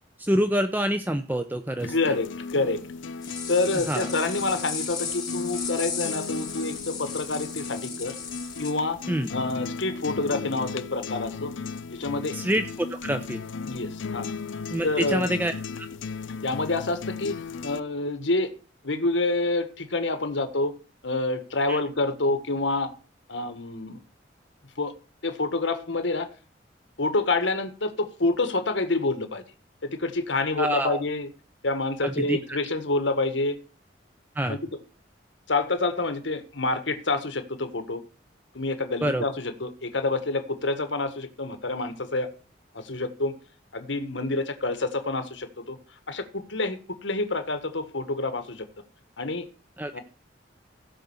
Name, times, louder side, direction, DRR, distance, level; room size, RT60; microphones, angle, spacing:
voice 1, 0.2-2.1 3.9-4.1 9.1-9.3 12.3-12.6 12.9-13.4 14.7-15.9 21.7-21.8 30.6-31.0 32.0-32.6 34.4-34.6 39.0-39.2 49.8-50.0, equal, 10° right, 9 dB, 0.6 m, -26 dB
sound 1, 1.8-17.8, left 4 dB, 90° left, 0.6 m, -36 dB
voice 2, 1.9-2.8 3.5-8.1 8.6-9.0 9.3-11.5 11.9-12.4 13.6-14.3 14.8-15.3 16.4-17.3 17.6-18.5 18.8-20.7 21.0-22.9 23.3-24.0 24.8-24.9 25.2-26.3 27.0-29.4 29.8-31.3 31.6-33.6 34.5-34.8 35.5-38.0 38.5-42.3 42.7-43.3 43.7-45.8 46.1-48.7 49.2-49.5 49.9-50.0, left 2 dB, 75° left, 9 dB, 1.5 m, -27 dB
sound 2, 3.2-8.7, left 6 dB, 20° left, 4.4 m, -35 dB
16.0 x 5.4 x 7.2 m, 0.38 s
head